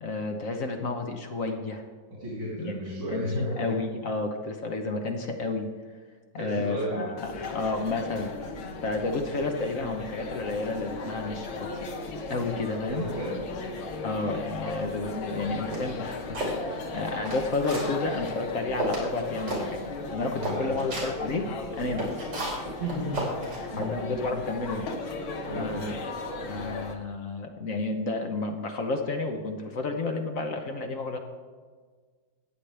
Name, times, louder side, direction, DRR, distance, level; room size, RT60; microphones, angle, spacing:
voice 1, 0.0-1.8 2.6-2.8 3.1-5.7 6.3-8.3 8.8-11.7 12.3-13.1 14.0-19.8 20.1-21.5 21.8-22.1 23.8-24.9 25.6-26.0 26.5-31.2, left 3 dB, 50° left, 4 dB, 1.1 m, -31 dB
voice 2, 2.2-3.7 6.4-7.1 12.9-13.5 20.4-20.9 22.8-23.4 23.7-24.0 25.4-25.9, equal, 85° right, -7 dB, 3.9 m, -33 dB
sound 1, 7.2-27.0, left 3 dB, 80° left, 1.9 m, -37 dB
sound 2, 15.7-16.5 17.0-17.9 18.4-18.5 18.8-19.1 19.5-19.6 20.0-20.1 20.4-21.1 21.7-23.9, right 1 dB, 60° right, 3.7 m, -32 dB
15.0 x 9.0 x 3.4 m, 1.5 s
omnidirectional pair, 2.2 m